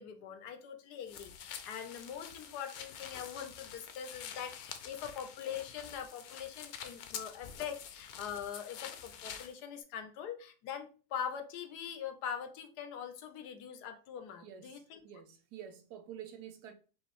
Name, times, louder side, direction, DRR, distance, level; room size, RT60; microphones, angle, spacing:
voice 1, 0.0-15.0, left 8 dB, 90° left, 1.2 m, -43 dB
sound 1, 1.1-9.5, left 8 dB, 75° left, 1.0 m, -47 dB
voice 2, 14.4-16.7, right 9 dB, 80° right, 1.2 m, -49 dB
4.9 x 2.6 x 3.1 m
omnidirectional pair, 1.7 m